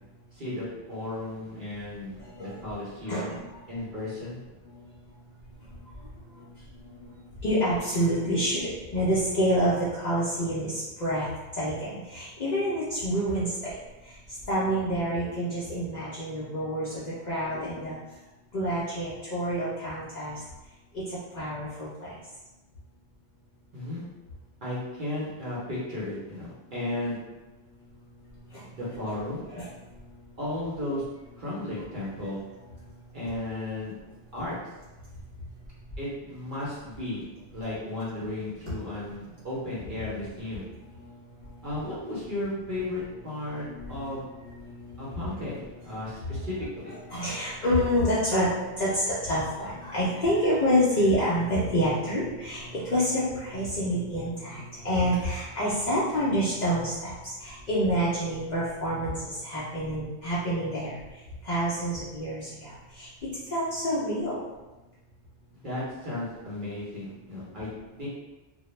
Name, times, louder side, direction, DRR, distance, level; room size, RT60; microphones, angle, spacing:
voice 1, 0.3-3.3 3.7-4.4 23.7-24.0 24.6-27.2 28.7-29.4 30.4-31.0 31.4-32.4 33.1-33.9 34.3-34.6 36.0-37.2 37.5-40.6 41.6-44.2 45.0-46.9 65.6-67.7 68.0-68.1, left 1 dB, 50° right, -8 dB, 0.7 m, -34 dB
voice 2, 7.4-11.3 11.6-13.7 14.5-17.9 18.5-20.4 21.3-22.1 29.5-29.7 43.6-43.9 44.5-44.8 47.1-48.5 48.8-57.1 57.4-59.1 59.4-61.0 61.5-62.7 63.0-63.1 63.5-64.4, equal, 55° left, -9 dB, 0.5 m, -27 dB
2.2 x 2.0 x 3.0 m, 1.1 s
omnidirectional pair, 1.2 m